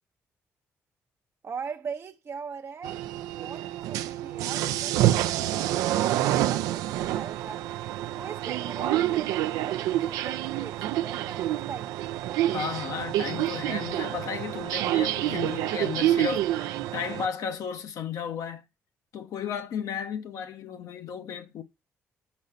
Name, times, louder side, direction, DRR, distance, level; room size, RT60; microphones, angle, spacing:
voice 1, 1.4-7.6 8.1-12.0, right 6 dB, 45° right, 0.6 m, -41 dB
sound 1, 2.8-17.3, right 13 dB, 85° right, 0.4 m, -28 dB
voice 2, 12.5-18.6 19.1-21.6, left 7 dB, 70° left, 0.9 m, -34 dB
5.6 x 5.3 x 6.5 m
supercardioid pair, 60°, 6 cm